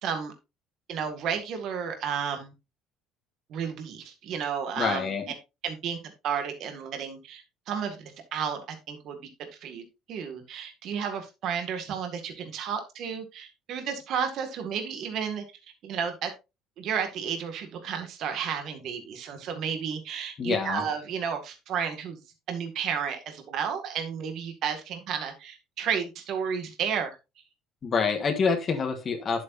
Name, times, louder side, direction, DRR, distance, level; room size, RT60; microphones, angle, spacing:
voice 1, 0.0-0.3 0.9-2.5 3.5-5.1 5.6-9.2 9.6-15.4 15.8-16.3 16.8-22.2 22.5-27.2, right 7 dB, 50° right, 5 dB, 1.9 m, -32 dB
voice 2, 4.8-5.2 20.4-20.8 27.8-29.4, left 5 dB, 30° left, 5 dB, 1.5 m, -26 dB
11.0 x 8.3 x 2.6 m, 0.25 s
cardioid pair, 155°, 0 cm